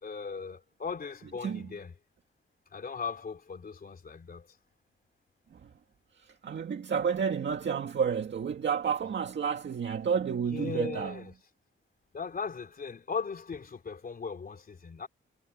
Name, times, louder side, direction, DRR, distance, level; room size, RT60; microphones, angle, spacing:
voice 1, 0.0-1.9 2.7-4.6 10.5-11.3 12.1-15.1, left 5 dB, 45° left, 3.5 m, -38 dB
voice 2, 6.2-11.2, right 7 dB, 60° right, 2.0 m, -31 dB
wide cardioid pair, 140°, 21 cm